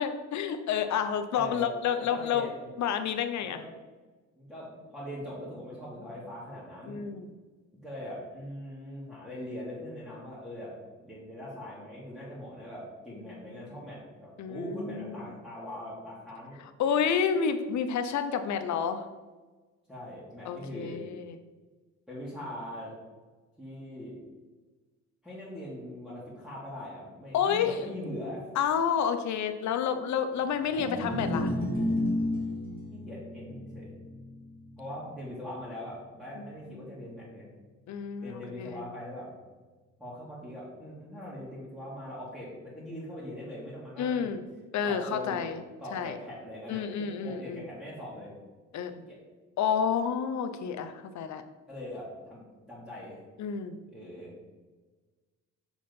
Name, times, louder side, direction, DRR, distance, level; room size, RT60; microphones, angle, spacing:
voice 1, 0.0-2.5 2.8-3.6 6.9-7.3 13.6-13.7 14.4-15.2 16.8-19.0 20.4-21.3 27.3-27.7 28.6-31.5 36.4-36.9 37.9-38.8 44.0-44.4 44.7-45.6 45.9-46.1 46.7-47.6 48.7-48.9 49.6-51.4 53.4-53.8, left 7 dB, 70° left, 9 dB, 0.7 m, -30 dB
voice 2, 1.3-1.7 2.0-2.7 3.4-3.7 4.4-7.0 7.7-10.7 11.0-16.6 19.9-21.0 22.1-23.0 23.6-24.2 25.2-28.5 30.7-31.0 32.9-33.9 34.8-37.5 38.2-39.3 40.0-44.4 44.8-45.4 45.8-48.3 48.9-49.2 51.7-53.2 53.9-54.3, left 1 dB, ahead, -9 dB, 2.2 m, -41 dB
sound 1, 30.7-37.0, left 1 dB, 30° left, 1.6 m, -33 dB
6.3 x 3.8 x 5.3 m, 1.3 s
cardioid pair, 90°, 30 cm